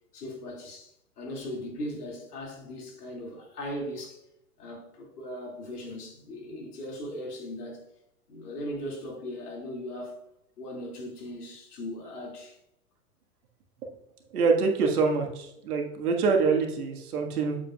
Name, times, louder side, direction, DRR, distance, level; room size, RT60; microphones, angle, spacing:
voice 1, 0.1-4.2 4.6-7.8 8.3-10.2 10.6-12.6, left 1 dB, 80° left, 2.4 m, -38 dB
voice 2, 14.3-17.6, right 4 dB, 75° right, 1.7 m, -25 dB
8.4 x 7.7 x 2.3 m
hypercardioid pair, 95°, 45 cm